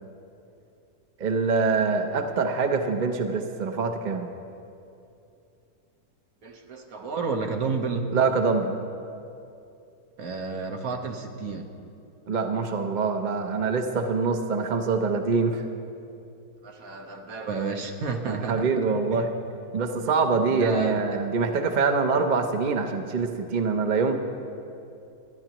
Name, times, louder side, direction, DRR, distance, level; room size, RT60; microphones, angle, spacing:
voice 1, 1.2-4.3 8.1-8.7 12.3-15.6 18.3-19.3 19.7-24.2, right 4 dB, 40° right, 5 dB, 0.7 m, -25 dB
voice 2, 6.4-8.1 10.2-11.7 16.6-18.7 19.1-19.2 20.5-21.2, right 4 dB, 65° right, 3 dB, 1.5 m, -31 dB
29.0 x 10.0 x 3.0 m, 2.6 s
omnidirectional pair, 1.6 m